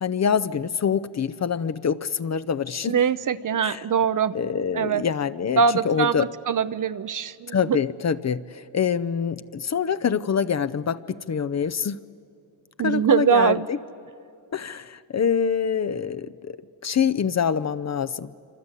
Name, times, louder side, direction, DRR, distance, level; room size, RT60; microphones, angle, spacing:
voice 1, 0.0-3.0 3.5-3.8 4.3-6.3 7.5-12.0 12.8-13.8 14.5-16.6 16.8-18.3, left 7 dB, 40° left, 14 dB, 0.6 m, -25 dB
voice 2, 2.9-4.3 4.7-5.0 5.6-7.8 12.8-13.7, right 7 dB, 45° right, 13 dB, 0.7 m, -22 dB
26.5 x 26.0 x 8.3 m, 2.4 s
cardioid pair, 105°, 43 cm